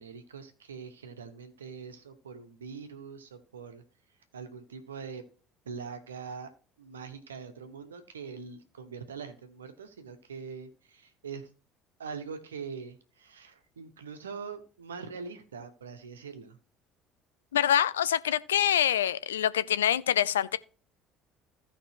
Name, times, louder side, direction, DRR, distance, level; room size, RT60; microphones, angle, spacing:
voice 1, 0.0-3.8 4.3-5.2 5.6-6.5 6.8-11.5 12.0-16.6, right 5 dB, 85° right, 1.3 m, -43 dB
voice 2, 17.5-20.6, left 10 dB, 80° left, 0.4 m, -25 dB
16.0 x 5.3 x 3.0 m
hypercardioid pair, 60°, 0 cm